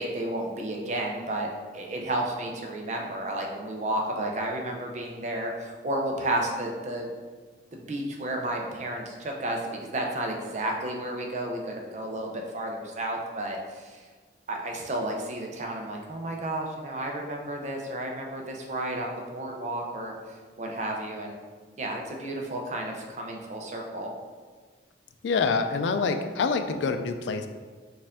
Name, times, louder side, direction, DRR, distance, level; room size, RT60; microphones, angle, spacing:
voice 1, 0.0-7.1 7.7-14.0 14.5-20.1 20.6-21.4 21.8-24.1, right 1 dB, 40° right, 1 dB, 0.5 m, -32 dB
voice 2, 25.2-27.5, left 4 dB, 80° left, 7 dB, 0.3 m, -26 dB
4.3 x 2.5 x 3.5 m, 1.4 s
head